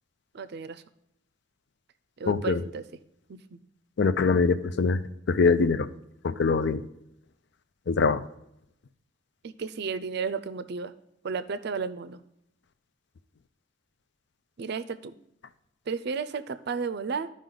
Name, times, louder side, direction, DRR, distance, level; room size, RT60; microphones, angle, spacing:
voice 1, 0.3-0.8 2.2-2.8 3.3-3.6 9.4-10.9 11.2-12.2 14.6-15.1 15.9-17.3, right 5 dB, 60° right, 13 dB, 0.5 m, -33 dB
voice 2, 2.3-2.6 4.0-5.0 5.3-5.9 6.2-6.8 7.9-8.2, left 4 dB, 65° left, 13 dB, 0.5 m, -23 dB
13.0 x 5.2 x 3.9 m, 0.80 s
head